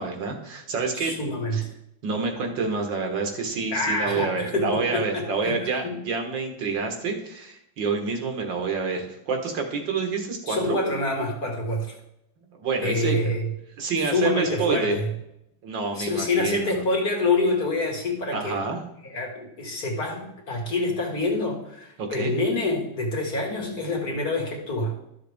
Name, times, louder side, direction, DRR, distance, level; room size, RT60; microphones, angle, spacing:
voice 1, 0.0-1.2 1.5-1.6 2.0-10.8 12.6-13.3 13.8-15.0 15.6-16.8 18.3-18.8 22.0-22.3, right 4 dB, 70° right, 3 dB, 2.0 m, -28 dB
voice 2, 1.0-1.7 3.7-6.0 10.5-12.0 12.8-13.4 14.0-15.1 16.0-18.6 19.0-25.0, left 2 dB, 50° left, -1 dB, 2.2 m, -26 dB
12.5 x 6.7 x 3.5 m, 0.82 s
omnidirectional pair, 2.1 m